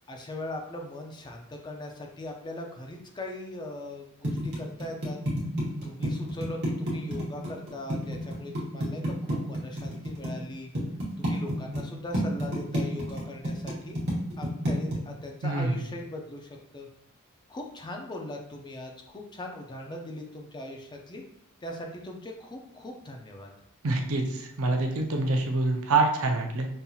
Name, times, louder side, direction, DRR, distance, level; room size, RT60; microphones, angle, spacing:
voice 1, 0.1-5.2 5.8-10.7 11.2-14.0 14.4-16.9 17.5-21.3 21.6-23.5, left 1 dB, 20° left, 1 dB, 0.4 m, -40 dB
sound 1, 4.2-10.3 10.7-11.8 12.1-15.0, equal, 50° right, 1.1 m, -29 dB
voice 2, 15.4-15.7 23.8-26.7, right 3 dB, 70° right, 3 dB, 0.6 m, -26 dB
5.4 x 2.8 x 2.3 m, 0.73 s
head